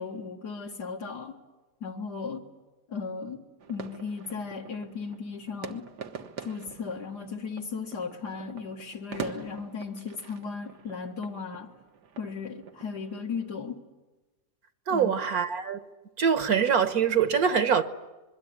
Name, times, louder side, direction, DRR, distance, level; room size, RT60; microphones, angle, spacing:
voice 1, 0.0-1.3 1.8-2.4 2.9-3.4 3.7-5.8 6.4-11.7 12.2-13.8 14.9-15.2, left 5 dB, 80° left, 2.4 m, -36 dB
sound 1, 3.6-13.6, right 7 dB, 90° right, 1.9 m, -44 dB
voice 2, 14.9-15.8 16.2-17.8, right 7 dB, 65° right, 1.6 m, -24 dB
26.5 x 22.5 x 9.6 m
omnidirectional pair, 1.7 m